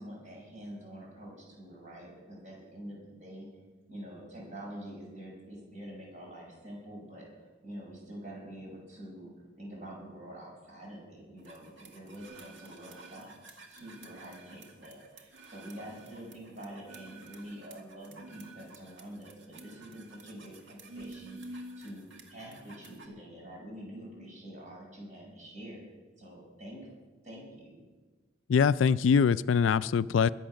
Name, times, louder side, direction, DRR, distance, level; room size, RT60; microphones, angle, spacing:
voice 1, 0.0-3.5 3.9-9.3 9.6-25.8 26.2-26.9 27.2-27.9, right 1 dB, 40° right, -2 dB, 6.4 m, -46 dB
sound 1, 11.4-23.1, right 2 dB, 65° right, 2.0 m, -50 dB
voice 2, 28.5-30.3, left 6 dB, 75° left, 17 dB, 0.4 m, -23 dB
22.0 x 7.9 x 6.5 m, 1.3 s
head